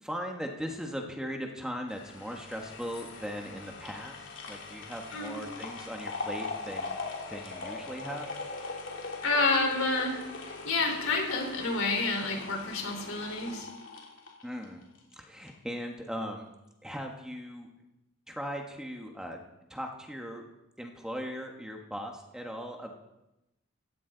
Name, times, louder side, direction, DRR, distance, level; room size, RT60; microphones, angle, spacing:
voice 1, 0.0-7.1 7.3-8.3 14.4-14.8 15.2-16.5 16.8-17.7 18.3-19.4 19.7-20.4 20.8-22.9, equal, 5° right, 2 dB, 1.3 m, -39 dB
sound 1, 1.9-15.1 15.5-15.6, left 3 dB, 60° left, 3.3 m, -41 dB
voice 2, 9.2-13.7, left 3 dB, 80° left, 1 dB, 4.3 m, -29 dB
16.5 x 14.5 x 3.9 m, 0.92 s
head